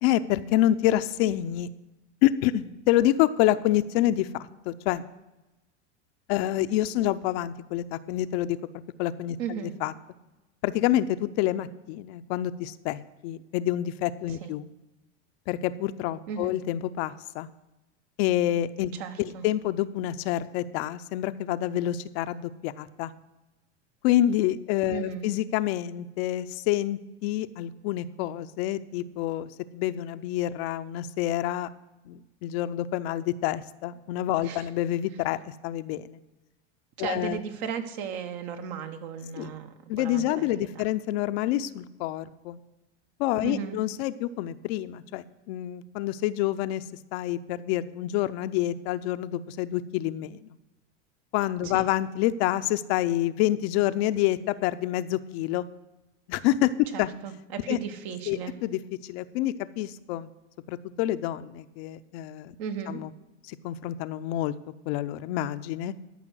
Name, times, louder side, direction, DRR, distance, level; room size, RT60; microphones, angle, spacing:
voice 1, 0.0-1.7 2.2-5.0 6.3-8.6 9.0-9.4 9.8-9.9 10.6-14.7 15.5-17.5 18.2-18.9 19.2-23.1 24.0-31.7 32.1-36.2 37.0-37.4 39.4-39.5 39.9-42.6 43.2-46.8 47.1-50.5 51.3-55.6 56.3-57.1 57.7-57.8 58.3-60.3 60.7-62.5 62.9-63.1 63.5-64.5 64.9-65.9, left 13 dB, 60° left, 12 dB, 0.6 m, -27 dB
voice 2, 9.4-9.7 14.4-14.5 16.3-16.6 18.9-19.4 24.9-25.3 34.4-34.7 37.0-40.8 43.4-43.8 51.6-51.8 56.9-58.5 62.6-63.0, right 7 dB, 65° right, 7 dB, 1.4 m, -35 dB
13.0 x 5.7 x 6.2 m, 1.0 s
supercardioid pair, 115°, 35 cm